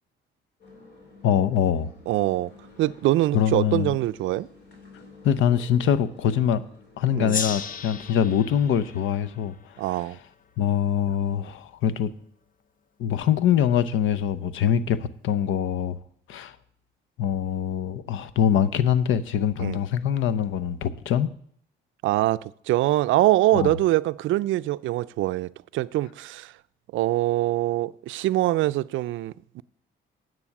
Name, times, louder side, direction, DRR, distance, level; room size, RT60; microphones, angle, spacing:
sound 1, 0.6-8.1, left 3 dB, 60° left, 3.6 m, -51 dB
voice 1, 1.2-1.9 3.3-3.9 5.2-6.6 7.0-9.5 9.9-10.0 10.6-12.1 13.0-15.0 15.2-16.0 16.3-16.5 17.2-21.3 23.5-23.7, left 9 dB, 80° left, 0.7 m, -23 dB
voice 2, 2.1-2.5 2.8-4.5 7.2-7.4 9.8-10.2 19.6-19.8 22.0-26.5 26.9-29.6, right 16 dB, 80° right, 0.4 m, -24 dB
Gong, 7.3-10.4, left 5 dB, 45° left, 0.8 m, -35 dB
9.8 x 7.7 x 5.9 m
cardioid pair, 90°, 20 cm